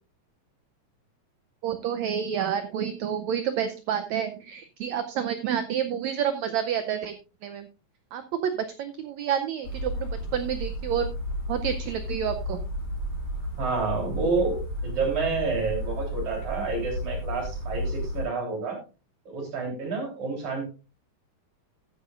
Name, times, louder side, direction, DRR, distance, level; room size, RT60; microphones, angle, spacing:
voice 1, 1.6-7.2 7.4-7.7 8.1-8.5 8.8-11.1 11.5-12.6, right 8 dB, 80° right, 9 dB, 1.6 m, -29 dB
sound 1, 9.6-18.3, equal, 45° left, 6.5 m, -33 dB
voice 2, 13.6-18.8 19.3-20.7, right 3 dB, 55° right, 1 dB, 4.9 m, -29 dB
14.0 x 9.9 x 2.4 m, 0.31 s
omnidirectional pair, 4.0 m